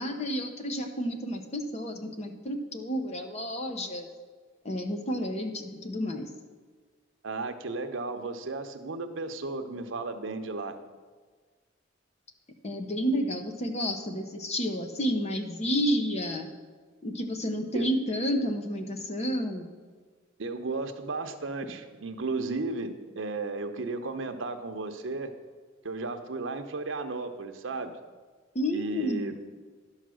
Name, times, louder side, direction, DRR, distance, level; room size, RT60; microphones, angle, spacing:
voice 1, 0.0-4.1 4.6-6.3 12.6-16.5 17.0-19.7 28.5-29.3, equal, 35° left, 5 dB, 0.8 m, -30 dB
voice 2, 7.2-10.8 17.7-17.9 20.4-25.3 25.8-27.9 28.7-29.3, right 3 dB, 80° right, 7 dB, 0.8 m, -34 dB
11.0 x 5.7 x 6.3 m, 1.5 s
head